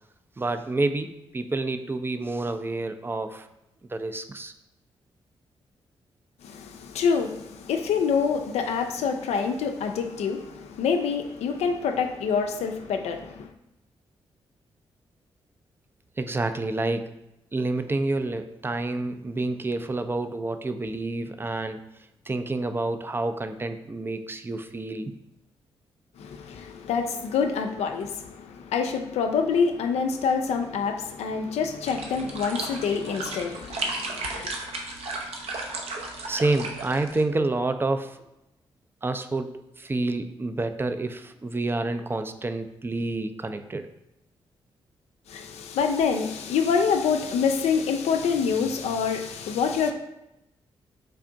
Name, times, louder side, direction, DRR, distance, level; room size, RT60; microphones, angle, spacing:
voice 1, 0.4-3.5 3.9-4.5 16.2-17.1 17.5-21.8 22.3-25.1 36.3-38.2 39.0-43.9, right 2 dB, 20° right, 0.4 m, -28 dB
voice 2, 6.4-13.5 26.2-34.5 45.3-49.9, left 6 dB, 75° left, 0.4 m, -26 dB
sound 1, 31.8-37.2, right 2 dB, 70° right, 0.7 m, -34 dB
3.3 x 2.5 x 3.8 m
supercardioid pair, 45°, 11 cm